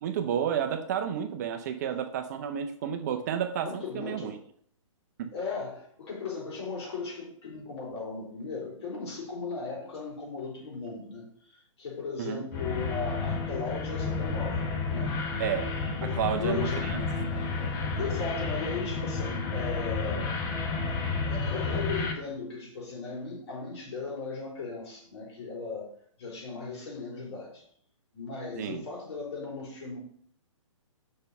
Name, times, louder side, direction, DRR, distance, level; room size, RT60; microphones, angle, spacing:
voice 1, 0.0-4.3 5.2-5.3 12.2-12.4 15.4-15.7 16.0-17.1 17.3-17.6 18.0-18.1 28.6-28.8, right 8 dB, 30° right, 6 dB, 0.6 m, -31 dB
voice 2, 3.6-4.4 5.3-15.1 16.0-16.9 18.0-20.4 21.3-25.9 26.2-27.6 28.1-30.0, left 4 dB, 55° left, -2 dB, 3.9 m, -37 dB
sound 1, 12.5-22.1, left 4 dB, 20° left, 0.8 m, -31 dB
6.8 x 5.3 x 5.5 m, 0.62 s
hypercardioid pair, 155°, 17 cm